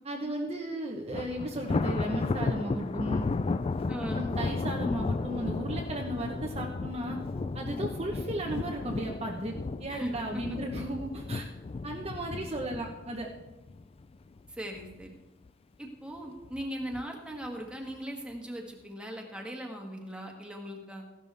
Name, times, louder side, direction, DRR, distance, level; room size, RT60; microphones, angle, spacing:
voice 1, 0.0-3.3 4.1-7.2 7.5-11.5 11.8-13.3, right 1 dB, 30° right, -1 dB, 1.0 m, -35 dB
Thunder, 1.1-14.4 14.8-15.1 15.5-15.6 16.4-17.0, left 3 dB, 30° left, 0.3 m, -34 dB
voice 2, 3.9-4.2 9.9-10.1 14.5-15.1 15.8-21.0, equal, 5° right, 1 dB, 1.6 m, -39 dB
14.5 x 12.0 x 3.4 m, 1.1 s
head